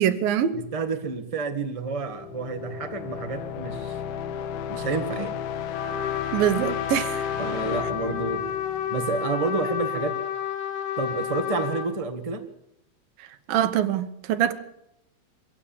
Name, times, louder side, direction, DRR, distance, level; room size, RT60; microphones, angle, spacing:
voice 1, 0.0-0.6 6.3-7.3 13.2-14.6, right 10 dB, 75° right, 2.8 m, -24 dB
voice 2, 0.5-4.0 4.7-5.3 7.4-8.4 8.9-10.2 11.0-12.4, right 3 dB, 45° right, 0.4 m, -29 dB
sound 1, 1.9-9.6, left 9 dB, 85° left, 3.1 m, -34 dB
Trumpet, 5.7-11.9, left 9 dB, 70° left, 3.2 m, -31 dB
23.5 x 15.5 x 7.2 m
omnidirectional pair, 4.2 m